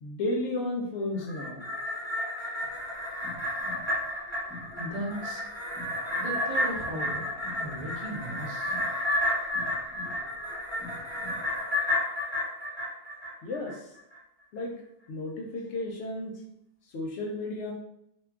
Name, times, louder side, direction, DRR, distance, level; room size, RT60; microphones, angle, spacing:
voice 1, 0.0-1.6 13.4-13.8 14.5-14.7 15.1-16.3 16.9-17.7, left 2 dB, 65° left, 1 dB, 0.8 m, -33 dB
sound 1, 1.2-13.7 14.1-14.2, left 1 dB, 20° left, 1.1 m, -31 dB
sound 2, 2.6-11.6, left 2 dB, 65° right, 1.2 m, -47 dB
voice 2, 4.7-5.4 6.2-7.3 7.6-8.7, equal, 40° right, -3 dB, 0.7 m, -36 dB
2.4 x 2.2 x 3.5 m, 0.79 s
omnidirectional pair, 1.4 m